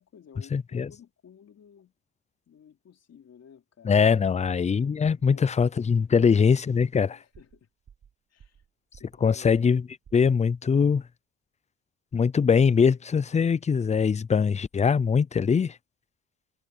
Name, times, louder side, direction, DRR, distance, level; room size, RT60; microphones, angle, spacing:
voice 1, 0.0-1.9 2.5-4.7 5.3-5.7 7.0-7.7 8.3-8.6 9.0-9.5, left 7 dB, 55° left, 3.5 m, -54 dB
voice 2, 0.5-0.9 3.8-7.1 9.2-9.8 10.1-11.0 12.1-15.8, left 6 dB, 25° left, 0.5 m, -22 dB
sound 1, 7.3-7.6 7.9-8.7 8.9-9.2 9.5-9.8 10.0-10.3, right 8 dB, 55° right, 3.3 m, -53 dB
cardioid pair, 90°, 30 cm